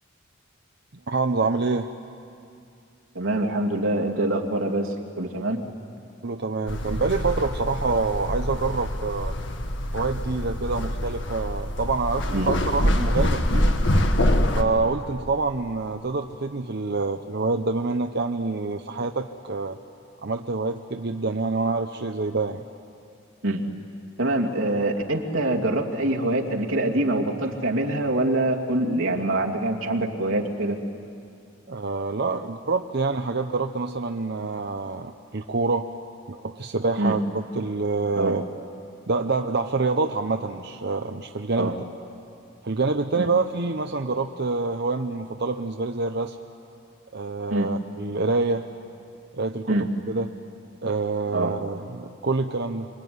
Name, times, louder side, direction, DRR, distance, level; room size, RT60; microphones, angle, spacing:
voice 1, 1.1-1.9 6.2-9.3 9.9-13.7 14.6-19.8 20.2-22.6 31.7-35.9 36.3-38.4 39.1-41.7 42.6-46.4 47.1-48.7 49.3-50.3 50.8-52.9, right 3 dB, 55° right, 5 dB, 0.8 m, -26 dB
voice 2, 3.1-5.6 12.3-12.5 23.4-23.6 24.2-30.8 37.0-37.2 38.2-38.4 41.6-41.8 43.2-43.3 47.5-47.7 49.7-49.9 51.3-51.5, right 1 dB, 85° right, 0 dB, 2.7 m, -25 dB
sound 1, 6.7-14.6, left 1 dB, 60° left, 1.7 m, -25 dB
26.0 x 24.0 x 9.6 m, 2.5 s
head